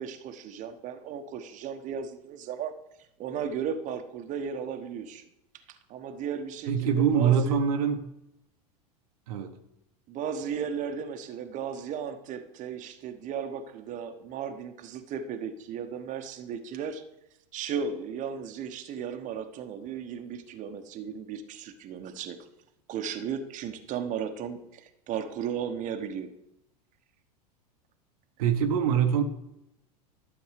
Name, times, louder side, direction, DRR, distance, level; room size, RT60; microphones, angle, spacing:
voice 1, 0.0-2.7 3.2-5.3 5.7-7.6 10.1-17.0 17.5-22.4 22.9-26.3, right 7 dB, 40° right, 1.1 m, -35 dB
voice 2, 6.7-8.0 9.3-9.5 28.4-29.2, right 7 dB, 65° right, 1.1 m, -24 dB
12.0 x 7.0 x 5.1 m
hypercardioid pair, 90°, 20 cm